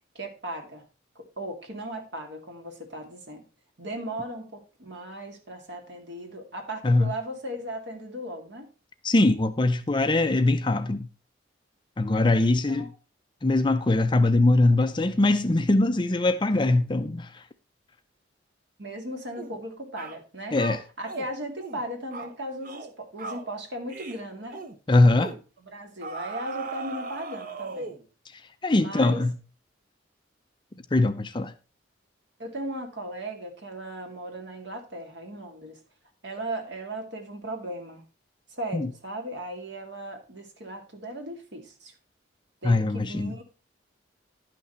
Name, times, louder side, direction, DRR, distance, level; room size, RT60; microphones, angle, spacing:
voice 1, 0.1-0.8 1.2-3.5 3.8-8.7 12.7-12.9 18.8-20.6 21.0-24.6 25.6-27.9 28.7-29.2 32.4-35.8 36.2-38.0 38.5-41.9 42.6-43.4, right 1 dB, 60° right, 2.3 m, -37 dB
voice 2, 9.0-11.1 12.0-12.9 13.4-17.4 20.5-20.8 24.9-25.3 28.3-29.4 30.9-31.5 38.7-38.9 42.6-43.3, left 2 dB, 25° left, 0.5 m, -22 dB
sound 1, 19.4-19.6 20.0-20.2 20.6-21.3 21.6-21.8 22.1-22.3 22.6-22.9 23.2-23.5 23.9-24.2 24.5-24.7 25.2-25.4 26.0-28.1, right 4 dB, 45° right, 1.1 m, -37 dB
11.0 x 6.1 x 4.3 m
head